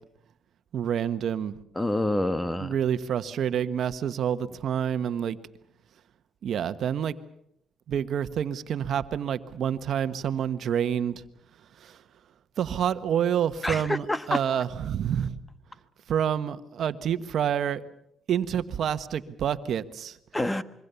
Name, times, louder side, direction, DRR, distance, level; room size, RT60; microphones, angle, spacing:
voice 1, 0.7-1.6 2.6-5.4 6.4-7.2 7.9-11.2 11.8-12.0 12.6-15.4 16.1-17.8 18.3-20.2, right 9 dB, 65° right, 11 dB, 1.3 m, -28 dB
voice 2, 1.7-2.7 13.6-14.4 20.3-20.6, left 1 dB, 15° left, 13 dB, 1.4 m, -27 dB
26.0 x 24.0 x 7.0 m, 0.74 s
cardioid pair, 90°, 0 cm